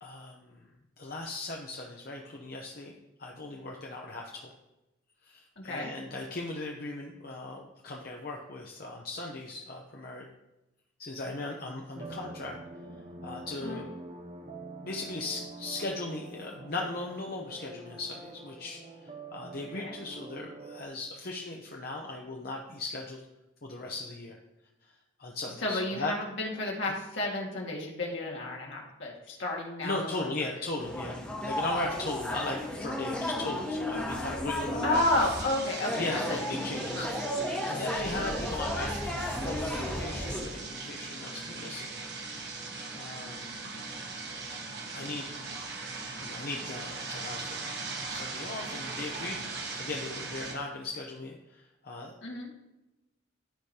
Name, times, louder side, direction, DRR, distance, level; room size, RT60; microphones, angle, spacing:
voice 1, 0.0-0.7 1.0-2.9 3.2-4.5 5.2-10.3 11.0-12.6 13.2-13.9 14.8-23.2 23.6-24.4 25.2-26.1 29.8-35.2 36.0-37.1 37.7-39.0 39.4-41.9 43.0-43.5 44.9-45.3 46.2-47.6 48.1-52.1, left 2 dB, 50° left, 0 dB, 0.8 m, -38 dB
voice 2, 5.6-5.9 13.6-13.8 19.7-20.0 25.6-30.3 34.8-37.1 52.2-52.5, left 2 dB, 70° left, -2 dB, 1.9 m, -32 dB
sound 1, 11.9-20.9, right 2 dB, 30° right, 0.5 m, -45 dB
sound 2, 30.8-40.4, left 1 dB, 5° left, 1.2 m, -34 dB
sound 3, 34.9-50.6, right 3 dB, 60° right, 1.4 m, -40 dB
13.5 x 5.0 x 2.9 m, 0.97 s
head